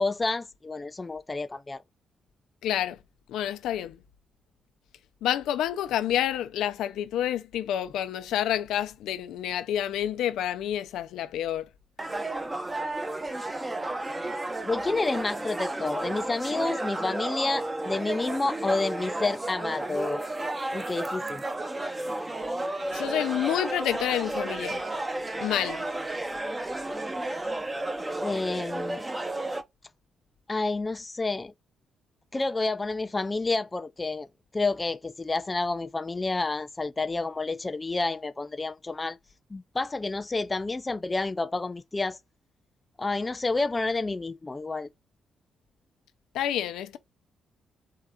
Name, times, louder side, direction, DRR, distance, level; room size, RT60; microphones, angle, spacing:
voice 1, 0.0-1.8 14.6-20.2 20.7-21.4 28.2-29.0 30.5-31.5 32.3-34.3 34.5-39.2 39.5-42.2 43.0-44.9, left 3 dB, 25° left, 0.4 m, -29 dB
voice 2, 2.6-3.0 3.3-4.0 5.2-11.7 22.9-24.8 25.4-25.8 46.3-47.0, left 11 dB, 85° left, 0.6 m, -28 dB
sound 1, 12.0-29.6, right 2 dB, 20° right, 0.7 m, -32 dB
4.6 x 2.4 x 4.0 m
cardioid pair, 80°, 0 cm